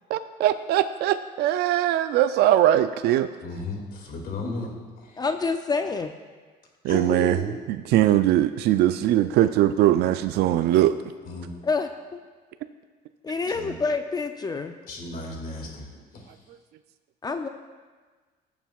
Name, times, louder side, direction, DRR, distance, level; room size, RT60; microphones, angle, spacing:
voice 1, 0.1-3.3 6.8-7.4 7.9-11.0, right 12 dB, 75° right, 11 dB, 0.4 m, -21 dB
voice 2, 3.4-4.7 6.8-7.5 11.2-11.5 13.5-13.7 14.9-15.9 16.1-16.4, left 1 dB, 55° left, 0 dB, 2.2 m, -34 dB
voice 3, 5.2-6.1 11.6-11.9 13.2-14.7 17.2-17.5, left 4 dB, 25° left, 7 dB, 0.4 m, -27 dB
18.0 x 7.1 x 2.4 m, 1.4 s
cardioid pair, 110°, 17 cm